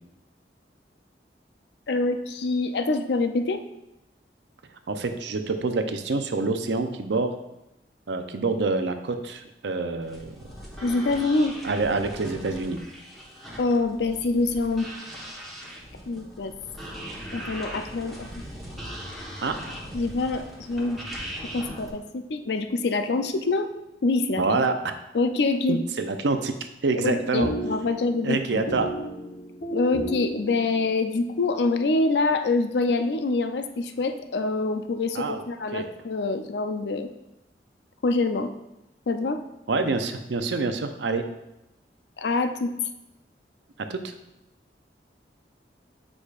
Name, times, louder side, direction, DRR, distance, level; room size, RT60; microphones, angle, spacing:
voice 1, 1.9-3.6 10.8-11.6 13.6-14.9 16.1-16.5 17.3-18.4 19.9-21.0 21.5-23.7 24.0-24.7 25.1-25.8 27.0-28.6 29.7-37.1 38.0-38.5 39.1-39.4 42.2-42.7, left 3 dB, 75° left, 8 dB, 0.5 m, -25 dB
voice 2, 4.9-7.4 8.1-10.3 11.6-12.8 19.4-19.6 24.4-24.9 25.7-26.5 26.8-27.5 28.2-28.9 35.1-35.4 35.7-35.9 39.7-41.3 43.9-44.0, right 3 dB, 90° right, 7 dB, 0.6 m, -26 dB
sound 1, 10.0-21.9, equal, ahead, 1.1 m, -40 dB
sound 2, 27.4-31.1, right 1 dB, 55° left, 1.0 m, -34 dB
8.3 x 4.9 x 2.4 m, 0.91 s
head